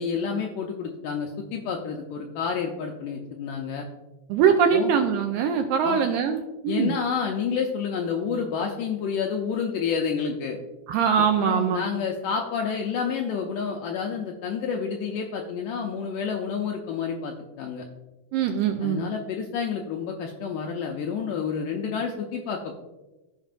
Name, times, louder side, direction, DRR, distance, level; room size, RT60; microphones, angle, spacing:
voice 1, 0.0-3.8 4.7-4.9 5.8-6.0 6.7-10.6 11.4-17.8 18.8-22.8, left 6 dB, 85° left, 2 dB, 1.9 m, -29 dB
voice 2, 4.3-6.9 10.9-11.8 18.3-19.0, right 7 dB, 85° right, 5 dB, 2.1 m, -22 dB
14.5 x 5.2 x 2.5 m, 1.1 s
omnidirectional pair, 4.4 m